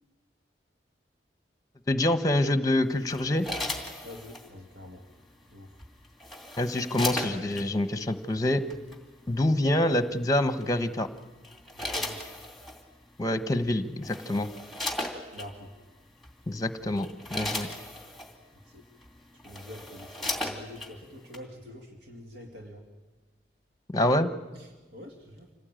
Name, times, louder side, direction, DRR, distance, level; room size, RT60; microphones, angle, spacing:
voice 1, 1.9-3.5 6.6-8.6 9.3-11.1 13.2-14.5 16.5-17.7 23.9-24.3, left 1 dB, 20° left, 11 dB, 1.0 m, -26 dB
sound 1, 3.1-4.5 5.8-7.7 8.7-8.9 10.6-10.9 11.4-12.8 13.6-13.7 14.0-15.5 16.2-16.4 16.8-18.3 19.0-19.1 19.4-20.9 21.3-21.4, left 1 dB, ahead, 2.7 m, -36 dB
voice 2, 4.0-5.0 5.5-5.8 11.7-12.2 15.3-15.7 18.6-18.8 19.4-22.9 24.5-25.5, left 1 dB, 80° right, 2 dB, 2.3 m, -45 dB
26.5 x 17.5 x 9.0 m, 1.3 s
head